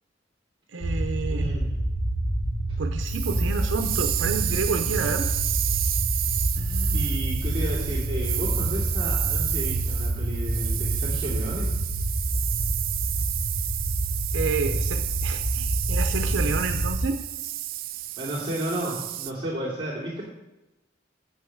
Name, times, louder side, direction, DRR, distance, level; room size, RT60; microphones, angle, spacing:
voice 1, 0.7-1.6 2.8-5.3 6.5-7.2 14.3-17.2, right 4 dB, 90° right, 5 dB, 0.7 m, -30 dB
sound 1, 0.8-17.0, right 1 dB, 40° left, 1.2 m, -27 dB
voice 2, 1.3-1.7 6.9-11.7 18.2-20.2, right 1 dB, 25° right, -10 dB, 2.6 m, -32 dB
sound 2, 3.0-19.3, right 14 dB, 50° right, 0.5 m, -31 dB
8.1 x 6.4 x 7.1 m, 1.0 s
head